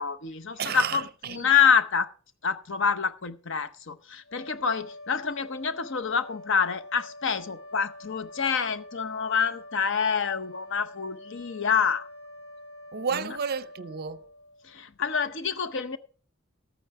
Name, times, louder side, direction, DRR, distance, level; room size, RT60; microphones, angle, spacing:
voice 1, 0.0-1.0 1.3-2.1 2.4-12.1 13.1-13.3 14.6-16.0, left 6 dB, 55° left, 0.7 m, -27 dB
voice 2, 0.6-1.4 12.9-14.3, right 6 dB, 45° right, 0.5 m, -32 dB
sound 1, 4.2-14.9, left 1 dB, 80° left, 3.9 m, -46 dB
13.5 x 9.0 x 4.7 m
head